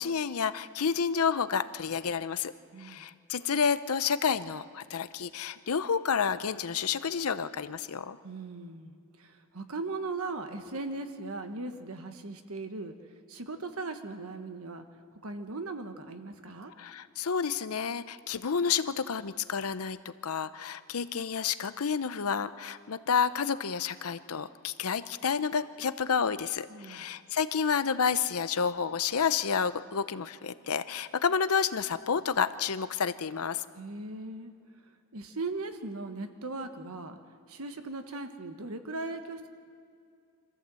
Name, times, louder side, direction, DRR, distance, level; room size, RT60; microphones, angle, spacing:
voice 1, 0.0-2.5 2.8-8.2 16.8-20.0 20.2-33.6, left 6 dB, 75° left, 13 dB, 0.7 m, -30 dB
voice 2, 2.7-3.1 8.2-12.9 13.3-14.8 15.2-16.7 26.7-27.0 33.7-34.5 35.1-37.2 37.5-39.5, right 3 dB, 75° right, 7 dB, 1.4 m, -38 dB
25.5 x 14.5 x 7.7 m, 2.3 s
head